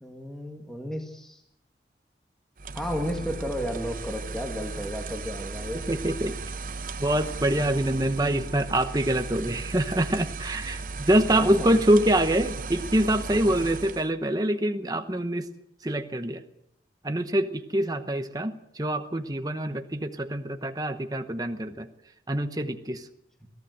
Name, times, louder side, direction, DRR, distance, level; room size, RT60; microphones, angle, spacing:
voice 1, 0.0-1.4 2.7-5.8 11.3-11.7, equal, 5° left, 2 dB, 1.9 m, -33 dB
sound 1, 2.6-14.1, right 3 dB, 50° right, 0.9 m, -36 dB
voice 2, 5.9-6.4 7.0-15.5 15.8-16.4 17.0-21.9 22.3-23.1, right 1 dB, 20° right, 7 dB, 1.0 m, -25 dB
23.0 x 15.5 x 7.9 m, 0.79 s
head